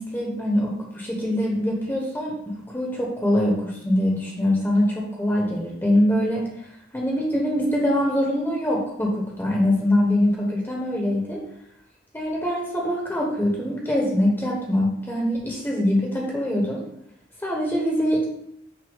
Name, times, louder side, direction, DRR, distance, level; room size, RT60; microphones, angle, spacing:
voice 1, 0.0-6.5 6.9-11.4 12.1-16.8 17.4-18.3, left 1 dB, 10° left, -2 dB, 1.0 m, -23 dB
6.0 x 2.9 x 5.4 m, 0.75 s
head